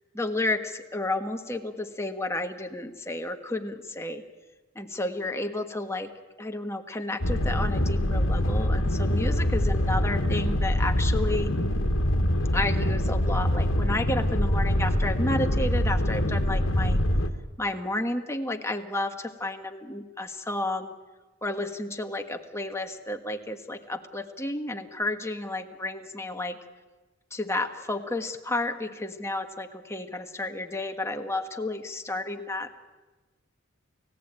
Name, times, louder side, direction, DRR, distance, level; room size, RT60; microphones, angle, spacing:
voice 1, 0.1-4.2 4.7-6.1 6.4-11.5 12.5-17.0 17.6-20.9 21.4-26.6 27.3-32.7, left 2 dB, 15° left, 5 dB, 1.6 m, -31 dB
sound 1, 7.2-17.3, left 1 dB, 70° left, 1.8 m, -24 dB
29.5 x 17.0 x 9.0 m, 1.2 s
head